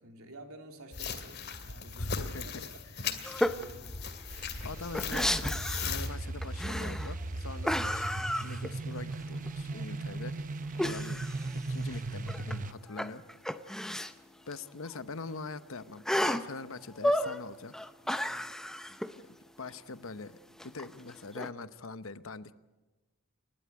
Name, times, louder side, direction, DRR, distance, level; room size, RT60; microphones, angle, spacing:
voice 1, 0.0-3.9 7.5-7.8 9.9-10.2 18.0-18.4, right 1 dB, 75° right, 4 dB, 3.1 m, -52 dB
sound 1, 0.9-6.1, left 5 dB, 45° left, 2.4 m, -38 dB
voice 2, 2.0-2.7 4.6-10.4 10.7-11.2 11.5-13.2 14.5-17.7 19.2-20.4 20.6-22.6, left 3 dB, 65° left, 13 dB, 0.9 m, -43 dB
sound 2, 3.2-3.7 4.1-4.2 4.4-6.1 6.4-7.2 7.6-9.1 9.5-9.6 10.8-12.6 12.9-14.1 14.5-14.6 14.8-14.9 16.1-16.5 16.9-17.4 17.7-19.1 20.6-21.5, equal, ahead, 0.6 m, -32 dB
sound 3, 4.3-12.7, right 2 dB, 35° right, 0.7 m, -38 dB
30.0 x 12.0 x 9.4 m, 1.1 s
head